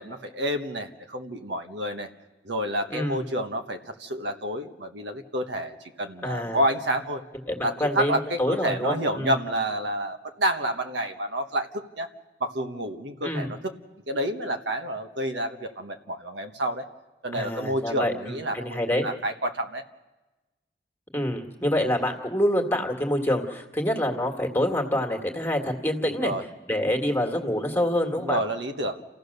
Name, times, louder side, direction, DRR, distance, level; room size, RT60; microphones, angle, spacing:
voice 1, 0.0-2.1 2.4-7.2 7.6-12.1 12.4-13.7 14.1-16.8 17.2-19.8 26.1-26.4 28.2-29.1, right 1 dB, 80° right, 6 dB, 1.3 m, -29 dB
voice 2, 2.9-3.2 6.2-6.6 7.5-9.3 13.2-13.5 17.3-19.1 21.1-26.3 26.7-28.4, left 1 dB, 10° left, 2 dB, 1.8 m, -26 dB
29.0 x 15.5 x 6.7 m, 1.1 s
head